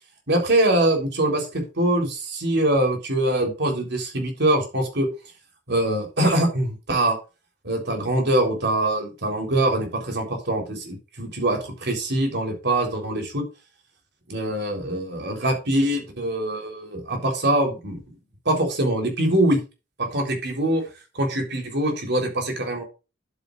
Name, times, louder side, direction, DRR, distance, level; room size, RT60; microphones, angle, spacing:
voice 1, 0.3-5.1 5.7-7.2 7.6-13.4 14.3-18.0 18.5-19.6 20.1-20.8 21.1-22.8, right 1 dB, 60° right, 3 dB, 3.7 m, -23 dB
11.0 x 8.3 x 2.5 m, 0.29 s
head